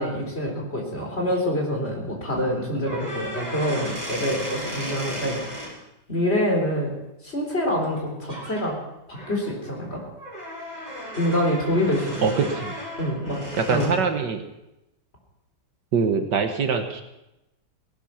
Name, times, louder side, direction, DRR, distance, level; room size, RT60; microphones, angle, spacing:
voice 1, 0.0-5.7 6.1-6.9 7.2-8.7 9.1-10.0 11.2-12.3 13.0-13.4 13.7-13.9, equal, 30° left, 0 dB, 4.0 m, -26 dB
sound 1, 2.8-5.7 7.8-8.0 8.3-8.6 9.1-14.0, equal, 20° right, 7.0 m, -35 dB
voice 2, 12.2-12.7 13.6-14.5 15.9-17.0, right 5 dB, 65° right, 6 dB, 1.7 m, -23 dB
18.0 x 11.5 x 5.8 m, 0.92 s
omnidirectional pair, 2.1 m